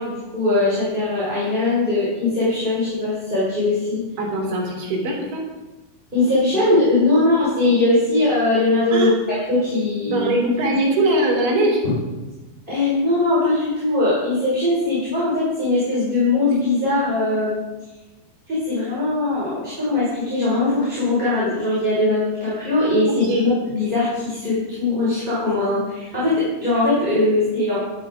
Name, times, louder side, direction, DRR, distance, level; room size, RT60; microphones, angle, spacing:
voice 1, 0.0-4.0 6.1-10.3 12.7-17.6 18.5-27.8, left 2 dB, 10° right, -9 dB, 4.7 m, -20 dB
voice 2, 4.2-5.4 8.9-9.1 10.1-11.8 23.2-23.5, right 1 dB, 80° right, -2 dB, 5.7 m, -21 dB
16.5 x 12.5 x 3.7 m, 1.1 s
omnidirectional pair, 5.2 m